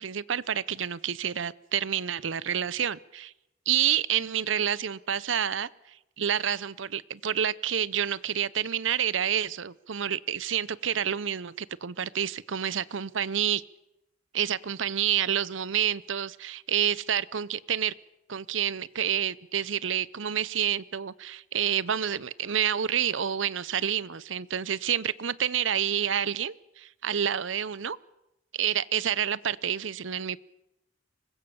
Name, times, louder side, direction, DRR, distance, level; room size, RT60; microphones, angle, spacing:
voice 1, 0.0-3.3 3.7-13.6 14.3-17.9 18.3-28.0 28.5-30.4, right 9 dB, 80° right, 20 dB, 0.7 m, -28 dB
25.0 x 20.5 x 7.1 m, 0.89 s
head